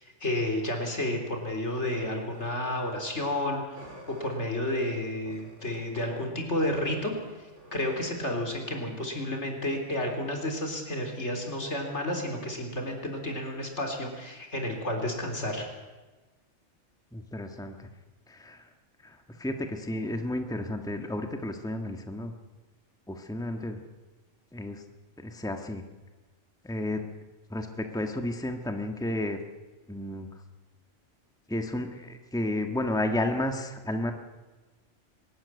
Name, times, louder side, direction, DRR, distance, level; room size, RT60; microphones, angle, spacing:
voice 1, 0.0-3.8 4.1-7.1 7.7-15.7, left 1 dB, 70° left, 2 dB, 4.2 m, -31 dB
sound 1, 1.7-3.5 3.7-4.4 5.0-8.8, right 1 dB, 80° right, 4.3 m, -51 dB
voice 2, 17.1-17.9 18.3-18.6 19.0-22.3 23.1-23.8 24.5-24.8 25.2-25.8 26.6-27.0 27.5-29.4 29.9-30.3 31.5-34.1, left 1 dB, 5° left, 5 dB, 1.5 m, -32 dB
23.5 x 13.5 x 9.7 m, 1.2 s
omnidirectional pair, 1.2 m